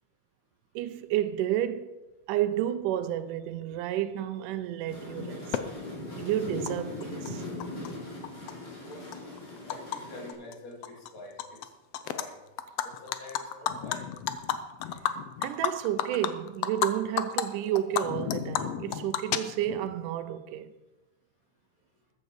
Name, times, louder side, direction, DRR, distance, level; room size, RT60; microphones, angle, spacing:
voice 1, 0.8-1.9 2.3-5.6 6.2-7.4 15.4-20.7, right 11 dB, 85° right, 2.3 m, -31 dB
sound 1, 4.9-10.3, left 2 dB, 30° left, 4.5 m, -39 dB
Animal, 5.5-5.6 6.7-6.8 7.0-7.9 8.2-10.0 10.3-10.5 10.8-11.7 11.9-12.2 12.6-16.9 17.2-17.4 17.8-19.9, left 10 dB, 75° left, 1.5 m, -31 dB
voice 2, 9.7-11.4 12.1-12.3 12.8-14.1, left 2 dB, 55° left, 4.2 m, -45 dB
14.0 x 9.8 x 4.9 m
omnidirectional pair, 3.6 m